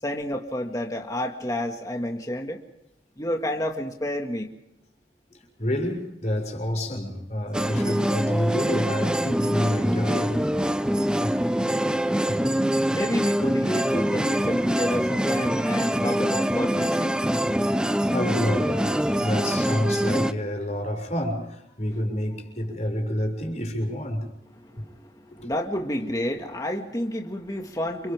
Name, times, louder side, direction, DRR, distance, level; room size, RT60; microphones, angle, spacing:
voice 1, 0.0-2.6 3.2-4.5 12.9-17.2 24.5-28.1, left 1 dB, 20° left, 2.1 m, -30 dB
voice 2, 5.6-10.5 12.2-12.4 12.8-12.9 18.1-24.3 24.7-24.9 25.3-25.5, equal, 40° left, 6.4 m, -28 dB
sound 1, 7.5-20.3, equal, 5° right, 0.8 m, -24 dB
30.0 x 29.0 x 3.7 m
head